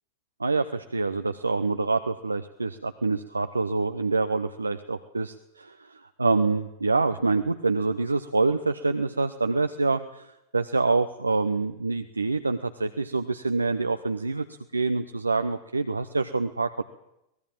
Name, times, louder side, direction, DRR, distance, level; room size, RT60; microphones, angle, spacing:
voice 1, 0.4-16.8, right 3 dB, 80° right, 9 dB, 0.8 m, -26 dB
23.0 x 19.5 x 7.5 m, 0.86 s
figure-of-eight pair, 90°, 0 cm